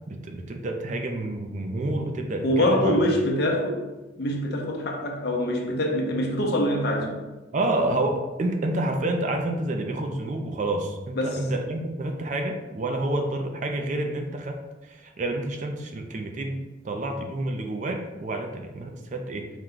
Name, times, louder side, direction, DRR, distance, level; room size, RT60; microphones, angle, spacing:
voice 1, 0.1-2.9 7.5-14.6 14.9-16.6 16.8-19.5, right 1 dB, 40° right, 4 dB, 0.4 m, -29 dB
voice 2, 2.4-3.8 4.2-7.2 11.1-11.4, left 1 dB, 55° left, 1 dB, 0.6 m, -24 dB
4.5 x 2.2 x 3.8 m, 1.1 s
head